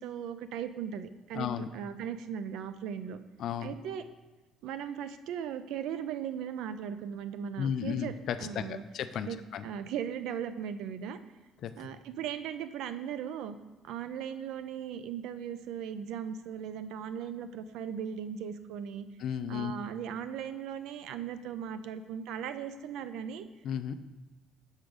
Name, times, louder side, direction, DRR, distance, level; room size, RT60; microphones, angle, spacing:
voice 1, 0.0-3.2 3.6-4.0 4.6-8.1 8.4-8.8 9.2-9.4 9.6-11.2 11.8-13.5 13.8-19.1 19.5-23.4, right 8 dB, 65° right, 12 dB, 0.4 m, -38 dB
voice 2, 1.3-1.7 3.4-3.7 7.6-9.6 11.6-11.9 19.2-19.7 23.6-23.9, left 8 dB, 45° left, 9 dB, 0.3 m, -34 dB
6.3 x 4.8 x 5.2 m, 1.1 s
cardioid pair, 180°, 0 cm